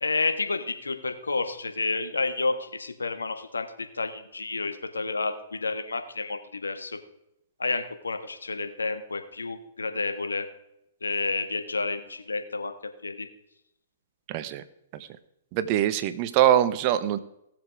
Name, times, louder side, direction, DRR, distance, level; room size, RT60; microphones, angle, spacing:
voice 1, 0.0-7.0 7.6-10.5 11.0-12.7 13.0-13.3, left 3 dB, 90° left, 8 dB, 1.6 m, -30 dB
voice 2, 14.3-14.6 14.9-15.1 15.5-17.2, right 11 dB, 40° right, 12 dB, 1.1 m, -23 dB
18.0 x 7.3 x 4.9 m, 0.81 s
hypercardioid pair, 120°, 0 cm